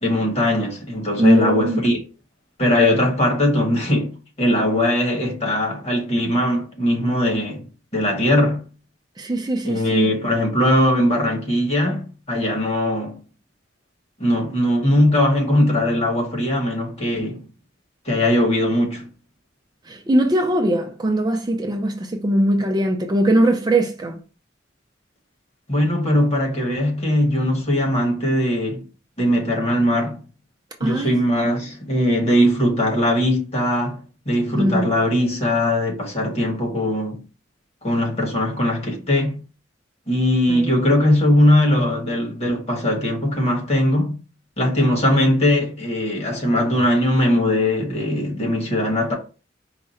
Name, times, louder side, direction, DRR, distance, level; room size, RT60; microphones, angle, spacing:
voice 1, 0.0-2.0 2.6-7.7 7.9-8.6 9.6-13.2 14.2-17.4 18.0-19.1 25.7-28.8 29.2-30.2 30.8-34.0 34.2-37.2 37.8-39.4 40.1-44.2 44.6-49.1, left 1 dB, 35° left, 1.4 m, -20 dB
voice 2, 1.2-1.8 9.2-10.1 19.9-24.2 30.8-31.2 34.6-34.9 40.5-40.7, right 1 dB, 20° right, 0.5 m, -20 dB
4.7 x 2.2 x 4.2 m
head